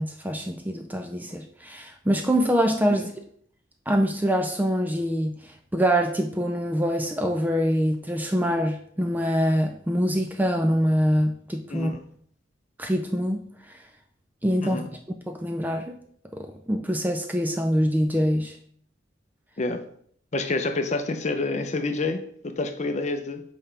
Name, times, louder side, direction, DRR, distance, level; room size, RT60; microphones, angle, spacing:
voice 1, 0.0-3.1 3.9-11.9 12.8-13.4 14.4-14.8 15.3-16.0 16.3-18.6, equal, 10° right, 4 dB, 0.4 m, -24 dB
voice 2, 11.7-12.0 14.6-14.9 19.6-19.8 20.3-23.4, left 3 dB, 35° left, 7 dB, 0.6 m, -28 dB
7.0 x 4.2 x 3.3 m, 0.62 s
head